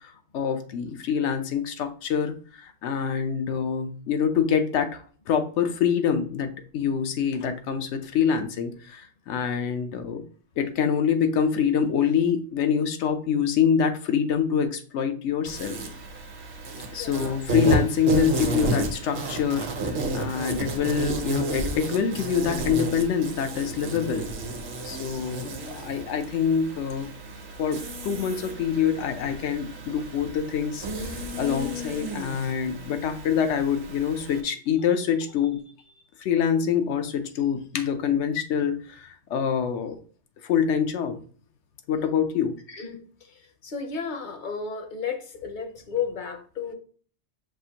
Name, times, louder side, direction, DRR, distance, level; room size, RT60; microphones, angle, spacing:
voice 1, 0.0-10.2 10.6-15.8 16.9-24.3 24.8-27.1 27.6-35.6 36.2-40.0 40.4-41.2 41.9-42.6, left 7 dB, 85° left, 7 dB, 0.9 m, -26 dB
Insect, 15.4-34.4, right 1 dB, 65° right, 1.0 m, -32 dB
voice 2, 17.0-17.4 42.7-46.7, left 6 dB, 50° left, 5 dB, 0.7 m, -33 dB
5.8 x 2.5 x 2.8 m, 0.43 s
omnidirectional pair, 1.2 m